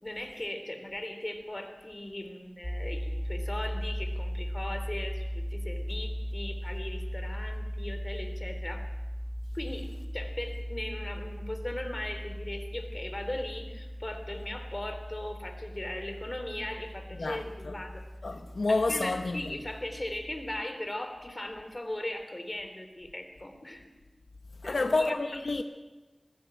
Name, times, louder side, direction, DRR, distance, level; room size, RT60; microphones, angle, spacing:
voice 1, 0.0-8.9 9.5-9.9 10.1-18.0 18.7-23.9 24.6-25.2, left 1 dB, 30° left, 3.4 m, -38 dB
sound 1, 2.6-20.6, equal, 5° left, 1.3 m, -38 dB
voice 2, 17.2-17.7 18.2-19.5 24.6-25.6, left 3 dB, 80° left, 1.0 m, -29 dB
20.0 x 16.5 x 8.9 m
wide cardioid pair, 60°, 0 cm